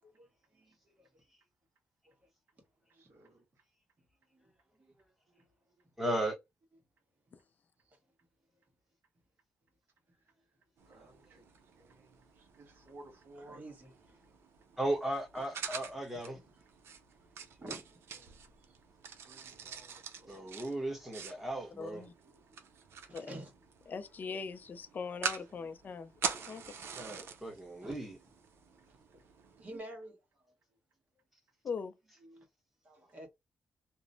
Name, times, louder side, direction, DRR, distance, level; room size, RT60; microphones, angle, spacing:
voice 1, 0.1-1.2 2.0-2.3 2.9-3.0 4.3-4.5 4.8-5.0 5.3-5.6 7.8-8.0 13.3-14.2 14.7-14.8 15.4-15.5 16.1-18.0 18.6-18.8 22.3-22.7 23.1-23.5 26.3-26.5 27.0-27.3 27.8-28.0 28.2-28.3 28.7-28.9 29.1-30.5 32.2-32.5 32.8-33.3, right 1 dB, 40° right, 1.3 m, -52 dB
voice 2, 6.0-6.4 14.8-16.4 20.3-22.0 26.9-28.1, right 1 dB, 5° right, 0.9 m, -36 dB
sound 1, 10.8-29.8, right 6 dB, 80° right, 0.6 m, -45 dB
voice 3, 10.9-11.4 11.8-11.9 12.5-13.6 19.2-20.6, right 2 dB, 65° right, 1.5 m, -56 dB
voice 4, 21.8-22.1 23.1-23.3 23.9-26.1 26.5-26.6 31.6-32.0, left 5 dB, 45° left, 0.4 m, -40 dB
3.0 x 2.0 x 2.5 m
cardioid pair, 125°, 4 cm